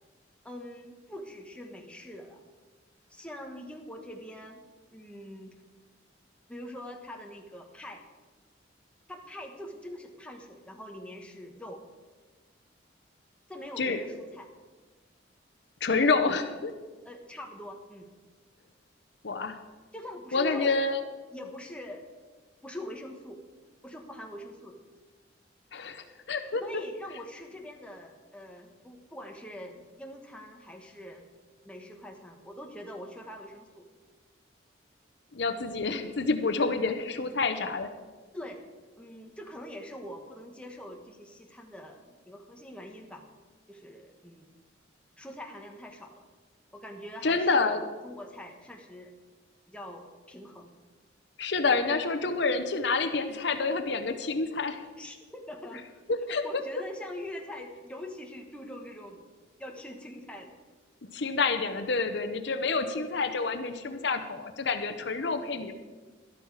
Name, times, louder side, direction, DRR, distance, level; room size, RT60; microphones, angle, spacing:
voice 1, 0.4-2.4 3.1-4.6 4.9-5.6 6.5-8.0 9.1-11.8 13.5-14.5 17.0-18.1 19.9-20.8 21.3-22.0 22.6-23.4 23.8-24.8 26.6-31.3 31.6-33.9 38.3-38.6 39.0-43.2 43.7-44.5 45.2-46.2 46.7-49.1 49.7-50.7 55.0-55.8 56.4-59.2 59.6-60.5, left 1 dB, 5° left, 2 dB, 1.2 m, -43 dB
voice 2, 15.8-16.7 19.2-19.6 20.3-21.0 25.7-26.6 35.3-37.9 47.2-47.8 51.4-54.8 56.1-56.6 61.0-65.7, left 4 dB, 60° left, 8 dB, 0.8 m, -28 dB
13.0 x 12.0 x 4.8 m, 1.4 s
head